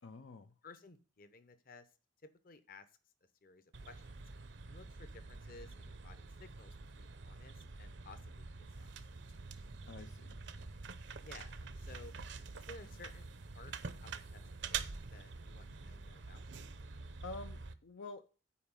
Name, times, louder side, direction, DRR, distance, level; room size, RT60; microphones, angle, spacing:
voice 1, 0.0-0.5 9.9-10.4 16.9-18.3, left 3 dB, 70° left, 9 dB, 0.5 m, -49 dB
voice 2, 0.6-1.9 2.2-2.9 3.4-4.1 4.7-8.5 8.8-9.2 11.2-12.1 12.5-13.2 13.5-16.5, left 3 dB, 50° left, 11 dB, 0.9 m, -56 dB
sound 1, 3.7-17.7, right 4 dB, 70° right, 0.7 m, -47 dB
8.5 x 4.9 x 7.3 m, 0.37 s
head